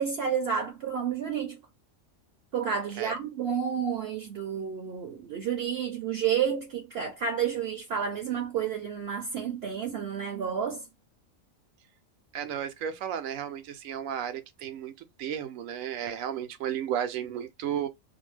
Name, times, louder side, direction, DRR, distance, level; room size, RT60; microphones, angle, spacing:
voice 1, 0.0-1.6 2.5-10.9, right 7 dB, 60° right, 0.7 m, -30 dB
voice 2, 12.3-14.9 15.2-17.9, right 9 dB, 85° right, 1.0 m, -33 dB
2.6 x 2.2 x 3.1 m
omnidirectional pair, 1.4 m